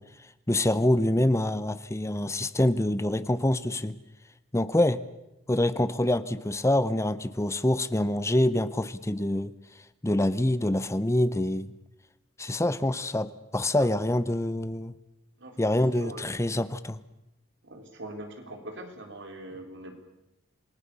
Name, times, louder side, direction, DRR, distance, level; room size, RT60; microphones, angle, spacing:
voice 1, 0.5-4.0 4.5-5.0 5.5-9.5 10.0-11.7 12.4-14.9 15.6-17.0, left 1 dB, 15° left, 15 dB, 0.7 m, -25 dB
voice 2, 15.4-16.6 17.6-19.9, right 1 dB, 60° right, 5 dB, 3.8 m, -43 dB
28.0 x 20.0 x 6.9 m, 0.91 s
head